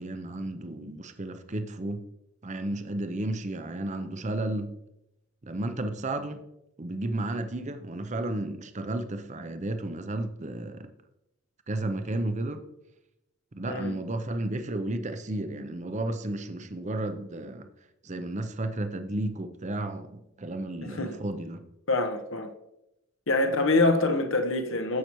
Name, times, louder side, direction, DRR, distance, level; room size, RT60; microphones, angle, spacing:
voice 1, 0.0-2.1 2.4-4.8 5.4-6.4 6.8-10.9 11.7-12.6 13.5-17.7 18.0-21.6, right 1 dB, 35° right, 0.6 m, -33 dB
voice 2, 20.8-21.2 21.9-22.5 23.3-25.0, left 2 dB, 60° left, 1.0 m, -25 dB
15.5 x 5.8 x 3.0 m
head